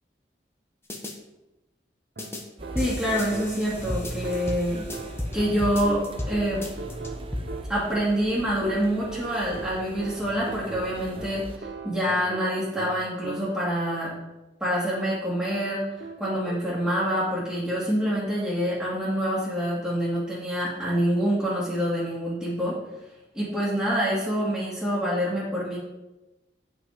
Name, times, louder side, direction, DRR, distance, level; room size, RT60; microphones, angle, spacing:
sound 1, 0.9-1.1 2.2-2.4 2.8-5.4 5.6-6.3 6.6-7.4, left 1 dB, 15° left, 1.1 m, -33 dB
sound 2, 2.2-13.8 16.0-16.8, right 4 dB, 60° right, 0.8 m, -41 dB
sound 3, 2.6-11.6, right 1 dB, 30° right, 0.9 m, -41 dB
voice 1, 2.7-4.8 5.3-6.6 7.7-14.1 14.6-22.8 23.3-25.8, equal, 5° right, -10 dB, 2.5 m, -26 dB
9.4 x 5.9 x 5.1 m, 1.0 s
head